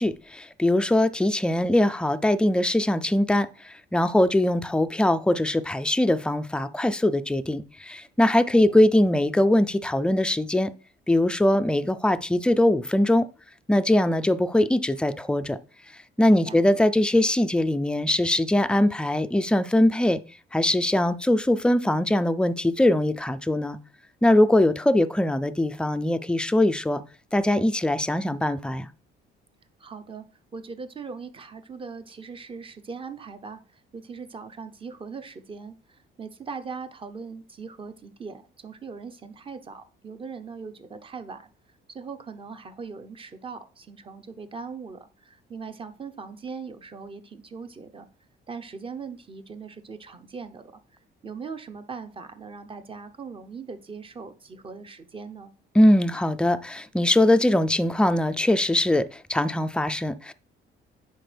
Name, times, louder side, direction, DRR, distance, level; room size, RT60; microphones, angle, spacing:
voice 1, 0.0-10.7 11.1-13.3 13.7-15.6 16.2-20.2 20.5-23.8 24.2-27.0 27.3-28.9 55.7-60.3, left 1 dB, 5° left, 12 dB, 0.3 m, -22 dB
voice 2, 16.2-16.6 29.8-30.2 30.5-41.5 41.9-48.1 48.5-50.7 51.2-55.5, right 5 dB, 25° right, 9 dB, 0.7 m, -40 dB
10.0 x 4.4 x 3.3 m, 0.38 s
cardioid pair, 135°, 20 cm